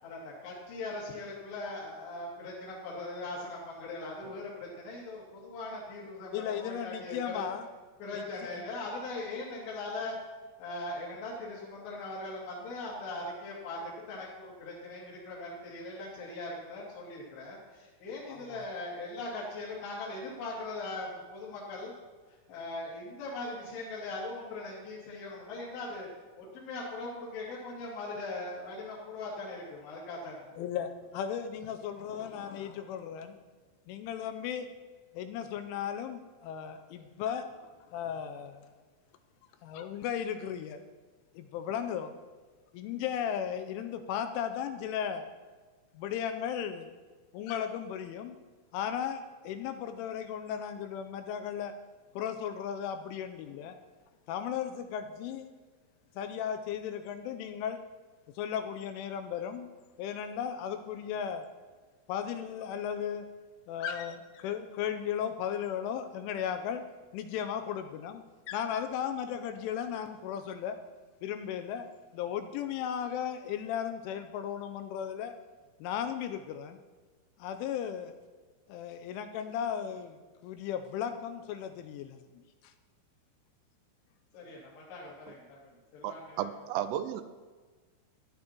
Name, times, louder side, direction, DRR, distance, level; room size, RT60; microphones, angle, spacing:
voice 1, 0.0-7.5 8.0-10.2 10.6-13.8 14.1-21.9 22.5-26.1 26.4-30.4 84.3-85.4 85.9-86.5, left 2 dB, 60° left, -6 dB, 4.3 m, -40 dB
voice 2, 6.3-7.7 8.1-8.6 18.3-18.6 30.6-33.4 33.9-34.7 35.1-38.7 39.6-40.8 41.3-42.1 42.7-45.2 45.9-46.9 47.3-48.4 48.7-51.7 52.1-53.8 54.3-55.5 56.1-57.8 58.3-59.7 60.0-61.4 62.1-63.3 63.7-66.8 67.1-70.8 71.2-71.9 72.1-75.3 75.8-76.8 77.4-78.1 78.7-82.7, left 8 dB, 85° left, 8 dB, 2.9 m, -36 dB
voice 3, 86.0-87.2, right 11 dB, 85° right, 10 dB, 3.1 m, -34 dB
16.0 x 11.5 x 3.0 m, 1.4 s
omnidirectional pair, 5.9 m